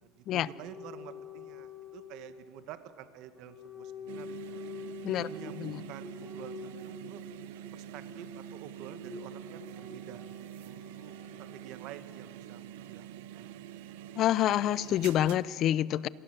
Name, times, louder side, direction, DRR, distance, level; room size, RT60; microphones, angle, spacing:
voice 1, 0.0-4.6 5.1-7.2 7.7-13.1 13.3-13.5, right 11 dB, 55° right, 11 dB, 1.7 m, -49 dB
sound 1, 0.5-2.5 3.3-11.5, left 4 dB, 10° left, 4.7 m, -47 dB
sound 2, 4.1-15.4, right 11 dB, 85° right, 1.1 m, -45 dB
voice 2, 14.2-16.1, left 12 dB, 40° left, 20 dB, 0.6 m, -27 dB
27.0 x 19.0 x 7.8 m, 2.1 s
supercardioid pair, 140°, 0 cm